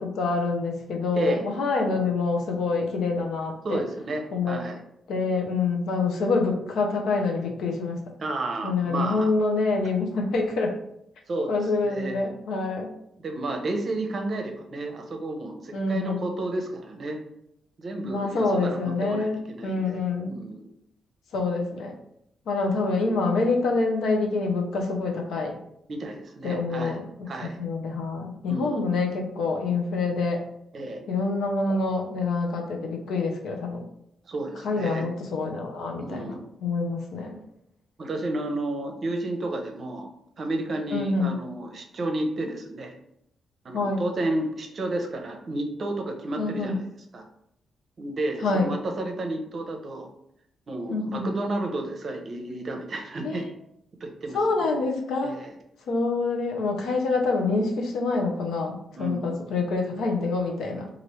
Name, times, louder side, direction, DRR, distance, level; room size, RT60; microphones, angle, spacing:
voice 1, 0.0-3.8 4.3-4.6 5.1-8.0 8.6-10.8 11.5-12.9 15.7-16.3 18.0-20.4 21.3-21.9 22.5-25.6 26.4-27.0 27.4-30.4 31.1-33.8 34.6-36.3 36.6-37.4 40.9-41.3 43.7-44.0 46.4-46.8 48.4-48.6 50.9-51.3 53.2-53.4 54.3-55.4 55.9-60.9, left 3 dB, 80° left, 2 dB, 0.6 m, -26 dB
voice 2, 3.6-4.8 8.2-9.3 11.3-11.5 11.8-12.2 13.2-17.2 17.8-20.0 20.3-20.7 25.9-26.9 27.3-27.6 28.5-28.8 30.7-31.0 34.3-35.0 36.0-36.5 38.0-40.1 40.4-42.9 43.6-46.8 47.1-47.2 48.0-50.1 50.7-53.5 54.0-54.4 55.2-55.5 58.9-59.3, right 2 dB, 50° right, 4 dB, 0.6 m, -31 dB
2.9 x 2.5 x 3.1 m, 0.76 s
cardioid pair, 80°, 0 cm